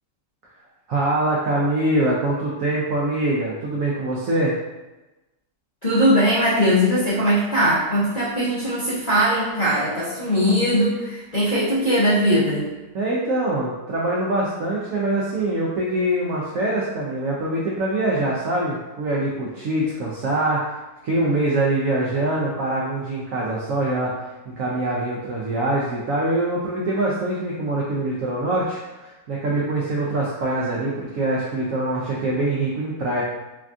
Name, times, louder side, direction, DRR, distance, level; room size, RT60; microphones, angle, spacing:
voice 1, 0.9-4.6 12.9-24.1 24.6-33.2, right 1 dB, 80° right, -4 dB, 0.7 m, -24 dB
voice 2, 5.8-12.7, equal, 55° left, -12 dB, 0.4 m, -20 dB
3.4 x 2.3 x 2.5 m, 1.1 s
omnidirectional pair, 1.9 m